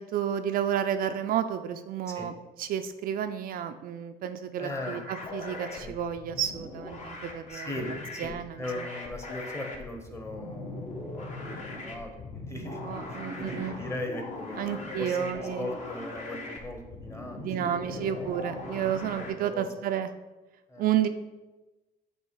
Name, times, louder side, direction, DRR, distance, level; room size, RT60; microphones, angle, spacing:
voice 1, 0.0-2.3 2.6-8.9 12.8-13.8 14.6-15.7 17.4-20.1 20.8-21.1, right 9 dB, 60° right, 8 dB, 0.4 m, -31 dB
voice 2, 4.6-5.0 5.8-5.9 7.5-12.8 13.4-18.9 19.4-19.7 20.7-20.9, left 1 dB, 15° left, 3 dB, 1.0 m, -39 dB
sound 1, 4.7-19.3, left 2 dB, 45° left, 1.2 m, -40 dB
7.4 x 3.0 x 4.7 m, 1.1 s
cardioid pair, 110°, 17 cm